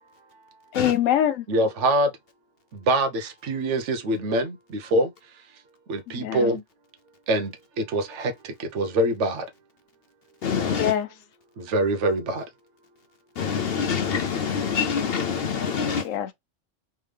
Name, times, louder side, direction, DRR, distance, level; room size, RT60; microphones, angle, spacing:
voice 1, 0.7-1.5 6.1-6.5 10.7-11.1 16.0-16.3, left 10 dB, 90° left, 1.0 m, -24 dB
voice 2, 1.5-2.1 2.7-5.1 5.9-6.6 7.3-7.5 7.8-9.4 11.6-12.4, right 1 dB, 70° right, 1.1 m, -24 dB
voice 3, 10.4-10.9 13.4-16.1, left 6 dB, 65° left, 0.6 m, -26 dB
3.6 x 3.4 x 3.1 m
omnidirectional pair, 1.3 m